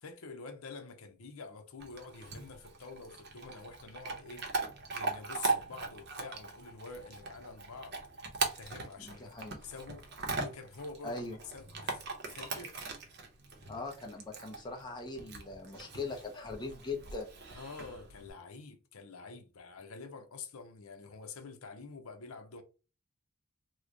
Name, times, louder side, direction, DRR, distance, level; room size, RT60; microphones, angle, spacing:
voice 1, 0.0-4.5 4.9-8.0 8.5-10.0 10.4-11.2 11.5-12.8 17.5-22.6, left 4 dB, 75° left, 0.7 m, -47 dB
Chewing mastication / Dog, 1.8-18.3, right 3 dB, 50° right, 0.7 m, -40 dB
voice 2, 9.0-9.6 11.0-11.4 13.7-17.3, left 3 dB, 20° left, 0.6 m, -41 dB
3.1 x 2.1 x 3.7 m
head